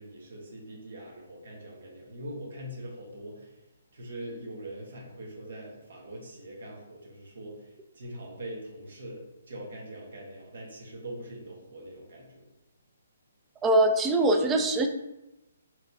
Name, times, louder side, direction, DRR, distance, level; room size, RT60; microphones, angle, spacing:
voice 1, 0.0-3.5 3.9-7.7 7.9-12.4, right 1 dB, 75° right, -1 dB, 1.3 m, -42 dB
voice 2, 13.6-14.9, right 1 dB, 10° right, 4 dB, 0.4 m, -22 dB
5.9 x 3.0 x 2.7 m, 0.92 s
hypercardioid pair, 165°, 0 cm